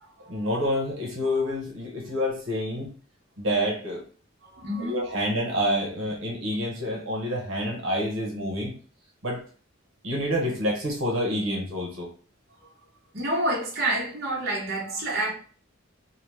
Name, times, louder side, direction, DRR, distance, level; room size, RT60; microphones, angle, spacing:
voice 1, 0.3-2.9 3.4-4.0 4.8-8.8 9.2-9.4 10.0-12.1, equal, 80° right, 0.9 m, -28 dB
voice 2, 4.5-5.0 12.6-12.7 13.1-15.3, right 1 dB, 55° right, 1.1 m, -28 dB
2.9 x 2.1 x 3.2 m
head